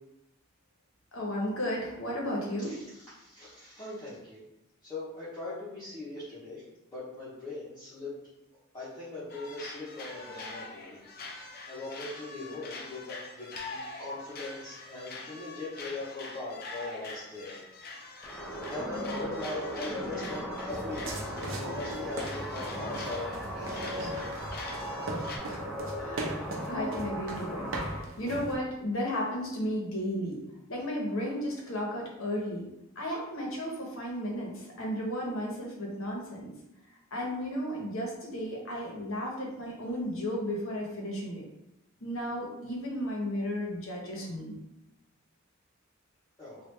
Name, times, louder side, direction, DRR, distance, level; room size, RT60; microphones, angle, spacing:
voice 1, 1.1-2.7 25.4-25.6 26.0-26.3 26.7-30.4 30.7-32.7 33.0-36.5 37.1-41.4 42.0-44.5, equal, 80° left, -2 dB, 1.0 m, -34 dB
voice 2, 2.6-4.4 4.8-6.6 6.9-8.1 8.7-11.0 11.7-17.6 18.6-24.1 46.4-46.6, left 2 dB, 20° left, -11 dB, 0.8 m, -40 dB
sound 1, 9.3-25.4, left 3 dB, 50° left, 0.5 m, -44 dB
sound 2, 18.2-28.0, equal, ahead, 0.6 m, -38 dB
sound 3, 20.7-28.5, right 1 dB, 70° right, 0.6 m, -39 dB
3.2 x 2.4 x 3.2 m, 0.88 s
head